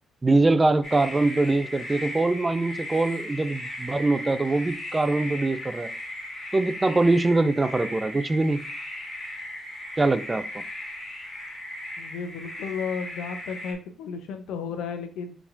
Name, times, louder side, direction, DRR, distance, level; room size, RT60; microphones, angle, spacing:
voice 1, 0.2-5.9 6.5-8.7 10.0-10.4, right 2 dB, 20° right, 0.4 m, -23 dB
sound 1, 0.8-13.7, left 1 dB, 40° left, 1.8 m, -37 dB
voice 2, 12.0-15.4, left 6 dB, 85° left, 0.7 m, -33 dB
4.8 x 3.5 x 2.6 m
cardioid pair, 90°, 0 cm